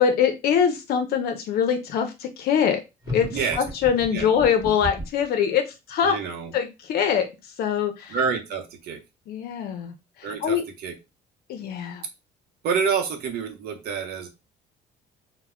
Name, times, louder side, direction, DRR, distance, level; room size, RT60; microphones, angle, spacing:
voice 1, 0.0-2.8 3.1-3.3 3.6-5.6 5.9-6.2 6.5-7.3 7.6-8.2 9.3-9.9 10.4-10.6 11.5-12.0, left 7 dB, 65° left, 6 dB, 0.5 m, -23 dB
sound 1, 3.0-5.2, equal, 20° right, 1.0 m, -33 dB
voice 2, 6.0-6.5 8.1-9.0 10.2-10.9 12.6-14.3, right 6 dB, 70° right, 5 dB, 0.7 m, -28 dB
2.1 x 2.1 x 3.5 m, 0.25 s
cardioid pair, 110°, 17 cm